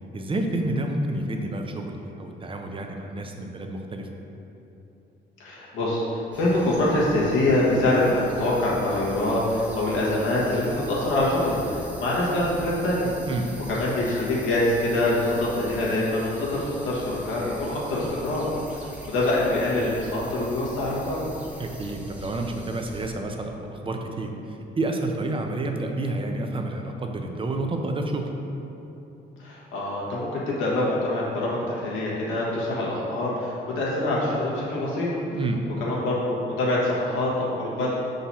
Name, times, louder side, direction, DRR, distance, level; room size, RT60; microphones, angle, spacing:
voice 1, 0.1-4.1 13.3-13.5 18.0-18.1 21.6-28.3 35.3-35.6, right 2 dB, 25° right, 3 dB, 0.6 m, -29 dB
voice 2, 5.4-13.1 13.7-21.3 29.4-35.1 35.8-37.9, left 1 dB, 85° left, -6 dB, 1.4 m, -25 dB
sound 1, 6.3-23.1, right 1 dB, 5° right, 0.9 m, -42 dB
5.8 x 3.9 x 4.2 m, 2.9 s
cardioid pair, 90°, 20 cm